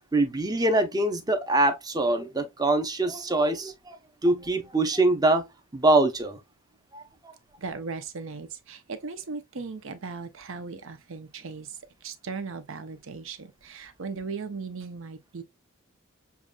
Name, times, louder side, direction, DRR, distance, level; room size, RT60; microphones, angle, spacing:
voice 1, 0.1-4.0 4.2-5.4 5.7-6.4 6.9-7.0, right 2 dB, 20° right, 0.7 m, -23 dB
voice 2, 7.6-11.7 12.0-15.4, right 4 dB, 70° right, 0.7 m, -37 dB
6.9 x 2.4 x 2.3 m
head